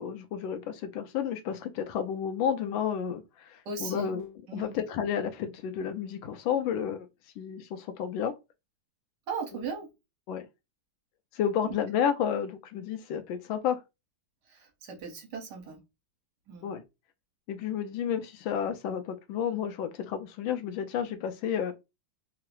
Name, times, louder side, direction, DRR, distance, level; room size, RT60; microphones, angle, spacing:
voice 1, 0.0-7.1 7.4-8.4 9.5-9.6 10.3-10.5 11.3-13.8 16.6-16.8 17.5-21.7, left 8 dB, 80° left, 1.3 m, -31 dB
voice 2, 3.6-4.1 4.5-4.7 9.3-9.9 14.5-15.8 16.5-16.7, right 5 dB, 60° right, 1.4 m, -37 dB
3.6 x 2.0 x 2.9 m
omnidirectional pair, 2.2 m